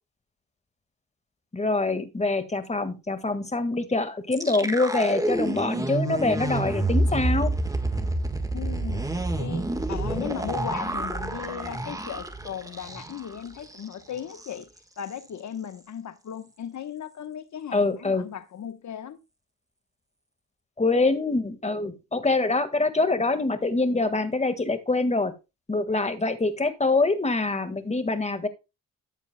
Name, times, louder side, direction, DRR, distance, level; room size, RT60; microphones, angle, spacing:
voice 1, 1.5-7.5 17.7-18.3 20.8-25.3 25.7-28.5, left 3 dB, 20° left, 1.7 m, -25 dB
sound 1, 4.3-13.3 13.6-13.8 14.2-14.6, right 2 dB, 10° right, 1.4 m, -28 dB
voice 2, 8.5-14.7 15.0-19.2, left 9 dB, 50° left, 1.1 m, -37 dB
12.5 x 8.2 x 2.2 m
cardioid pair, 70°, 35 cm